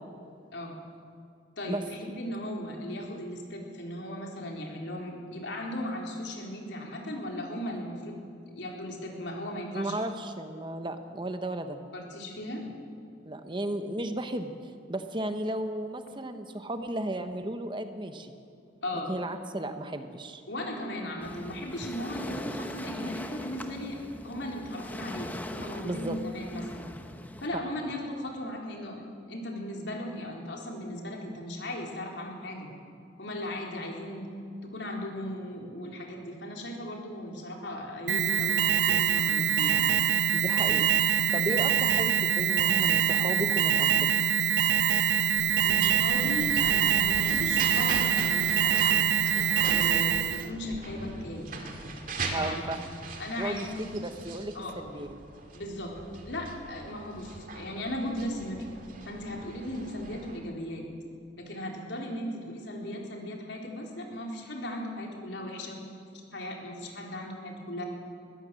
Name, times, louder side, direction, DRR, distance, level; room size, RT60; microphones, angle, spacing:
voice 1, 1.6-8.2 8.6-10.0 11.9-12.7 18.8-19.1 20.5-26.9 27.4-32.7 33.2-34.3 34.6-39.9 45.6-49.2 49.7-51.5 52.3-52.6 53.2-53.9 54.5-54.8 55.5-56.0 56.3-58.7 59.0-60.8 61.4-65.8 66.1-67.9, left 1 dB, 70° left, 0 dB, 4.0 m, -37 dB
voice 2, 9.7-11.8 13.2-18.3 19.1-20.4 25.8-26.2 40.3-41.0 41.3-44.1 52.3-52.8 53.4-55.1, right 1 dB, 25° right, 8 dB, 1.1 m, -34 dB
Waves surf, 21.2-27.5, left 1 dB, 10° left, 1.1 m, -41 dB
Alarm, 38.1-50.5, right 9 dB, 70° right, 0.5 m, -24 dB
sound 1, 45.3-60.4, right 3 dB, 50° right, 2.4 m, -41 dB
22.0 x 16.5 x 7.7 m, 2.4 s
head